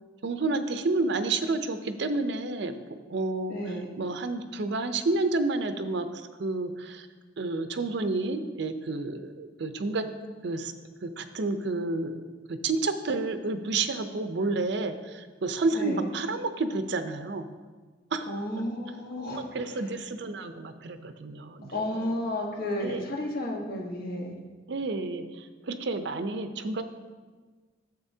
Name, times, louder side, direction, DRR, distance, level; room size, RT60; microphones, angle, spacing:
voice 1, 0.2-2.7 3.1-3.6 4.0-7.1 7.4-10.0 10.4-10.7 11.0-12.2 12.5-17.5 18.1-18.3 19.3-22.1 22.8-23.0 24.7-26.8, right 3 dB, 65° right, 9 dB, 0.5 m, -30 dB
voice 2, 3.5-3.9 15.7-16.1 18.3-19.7 21.7-24.3, left 1 dB, 55° left, -1 dB, 1.3 m, -32 dB
10.5 x 7.3 x 2.7 m, 1.4 s
head